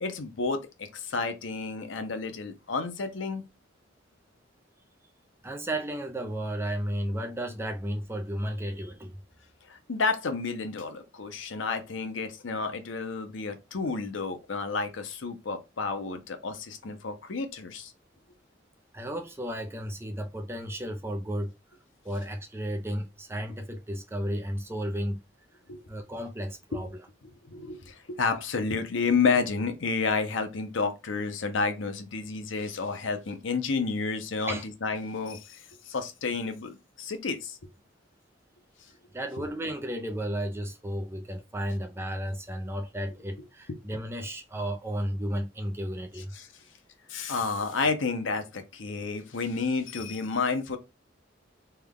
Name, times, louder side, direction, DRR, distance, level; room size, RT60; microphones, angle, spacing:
voice 1, 0.0-3.4 9.7-17.9 25.7-25.8 26.7-26.8 27.4-37.6 46.3-46.5 47.1-50.8, left 4 dB, 80° left, 0.7 m, -30 dB
voice 2, 5.4-9.2 18.9-21.5 22.0-25.2 25.9-27.1 34.5-34.6 39.1-46.3, equal, 15° right, 0.4 m, -33 dB
3.3 x 2.3 x 3.5 m
head